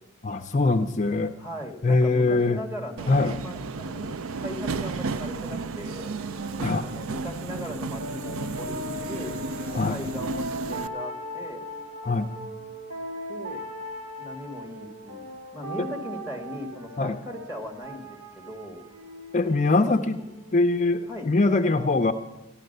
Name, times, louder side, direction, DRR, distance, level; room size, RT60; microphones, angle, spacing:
voice 1, 0.2-1.3 1.8-2.6 3.1-3.4 6.6-6.9 9.7-10.0 12.0-12.3 17.0-17.2 19.3-20.2 20.5-22.1, left 3 dB, 35° left, 7 dB, 0.5 m, -22 dB
voice 2, 1.4-6.1 6.8-8.8 9.1-9.4 9.8-11.6 13.3-13.7 14.2-15.2 15.5-18.8 20.2-20.3 21.1-21.3, left 1 dB, 10° right, 2 dB, 1.9 m, -38 dB
Subway metro underground, 3.0-10.9, right 4 dB, 70° right, 0.5 m, -33 dB
sound 1, 3.6-21.1, equal, 85° right, 4.7 m, -40 dB
Motorcycle, 5.9-14.0, equal, 45° right, 5.4 m, -51 dB
14.0 x 11.5 x 6.6 m, 0.97 s
head